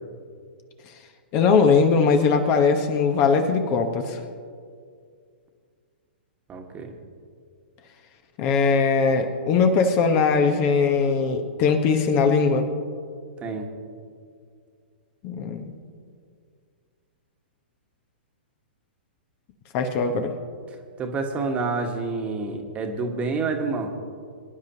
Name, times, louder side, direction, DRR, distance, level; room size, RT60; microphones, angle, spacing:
voice 1, 1.3-4.2 8.4-12.6 15.2-15.7 19.7-20.3, left 5 dB, 35° left, 6 dB, 1.1 m, -20 dB
voice 2, 6.5-6.9 13.4-13.7 21.0-23.9, right 3 dB, 20° right, 3 dB, 1.6 m, -28 dB
23.5 x 10.5 x 2.9 m, 2.2 s
figure-of-eight pair, 110°, 6 cm